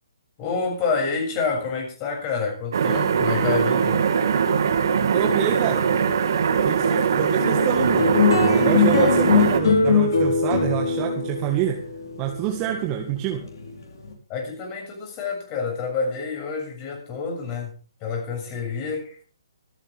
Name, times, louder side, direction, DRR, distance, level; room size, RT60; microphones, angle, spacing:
voice 1, 0.4-4.0 14.3-17.7 18.0-19.2, left 5 dB, 25° left, 2 dB, 7.2 m, -28 dB
sound 1, 2.7-9.6, right 6 dB, 60° right, 2.7 m, -21 dB
voice 2, 5.1-5.8 6.6-8.1 8.5-11.8 12.2-13.4, right 11 dB, 25° right, 3 dB, 2.0 m, -26 dB
sound 2, 7.4-14.1, left 5 dB, 60° left, 5.7 m, -21 dB
25.0 x 9.8 x 3.7 m, 0.38 s
figure-of-eight pair, 135°, 2 cm